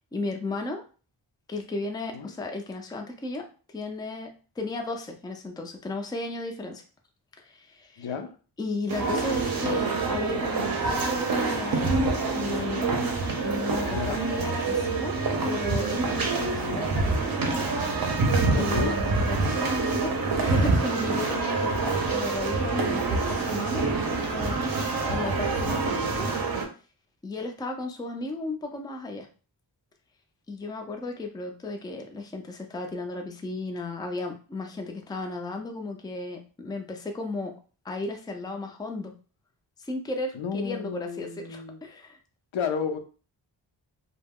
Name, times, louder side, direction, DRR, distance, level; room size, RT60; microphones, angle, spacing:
voice 1, 0.1-0.8 1.5-3.5 3.7-4.3 4.6-6.8 7.4-8.1 8.6-13.0 13.4-17.2 18.5-23.8 24.1-24.6 25.1-26.3 27.2-29.3 30.5-37.5 37.8-39.1 39.8-42.2, left 2 dB, 10° left, 3 dB, 0.3 m, -34 dB
voice 2, 8.0-8.3 13.9-14.2 18.5-19.0 40.3-41.8 42.5-43.0, left 6 dB, 85° left, 6 dB, 0.6 m, -32 dB
sound 1, 8.9-26.7, right 3 dB, 50° right, 0.6 m, -26 dB
2.2 x 2.0 x 3.5 m, 0.37 s
wide cardioid pair, 95°, 46 cm